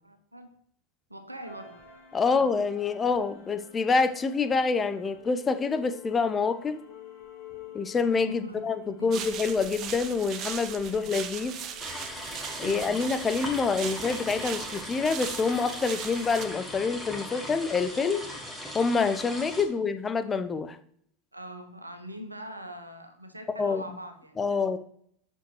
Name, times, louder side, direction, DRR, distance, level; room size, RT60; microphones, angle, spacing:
voice 1, 0.0-0.6 1.1-1.8 2.2-2.5 8.3-8.6 9.0-9.3 10.9-11.1 12.6-13.0 19.7-19.8 21.3-24.6, equal, 90° right, 7 dB, 0.8 m, -43 dB
sound 1, 1.4-15.5, left 8 dB, 55° left, 3.0 m, -50 dB
voice 2, 2.1-6.8 7.7-11.5 12.6-18.2 18.7-20.8 23.6-23.8 24.4-24.8, left 4 dB, 20° left, 10 dB, 0.6 m, -27 dB
sound 2, 9.1-16.4, right 8 dB, 40° right, 0.7 m, -39 dB
sound 3, 11.8-19.6, left 1 dB, ahead, 1.6 m, -39 dB
7.9 x 6.3 x 3.1 m, 0.66 s
figure-of-eight pair, 80°, 0 cm